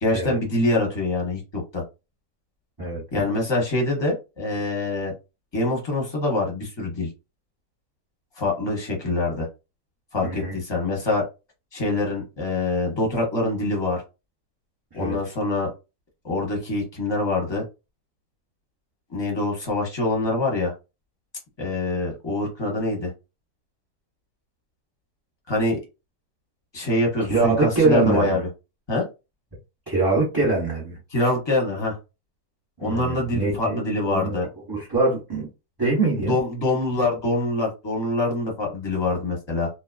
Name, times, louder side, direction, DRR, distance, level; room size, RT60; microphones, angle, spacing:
voice 1, 0.0-1.8 3.1-5.1 5.5-7.1 8.4-9.5 10.1-11.2 11.7-14.0 14.9-15.7 16.2-17.6 19.1-20.7 21.6-23.1 25.5-25.8 26.7-28.5 28.9-29.1 31.1-32.0 32.8-34.5 36.3-39.7, left 2 dB, 20° left, 0.8 m, -25 dB
voice 2, 10.2-10.5 14.9-15.2 27.3-28.4 29.9-31.0 32.8-34.4 34.7-35.5 35.8-36.4, right 3 dB, 15° right, 0.9 m, -23 dB
2.8 x 2.2 x 2.4 m
omnidirectional pair, 1.9 m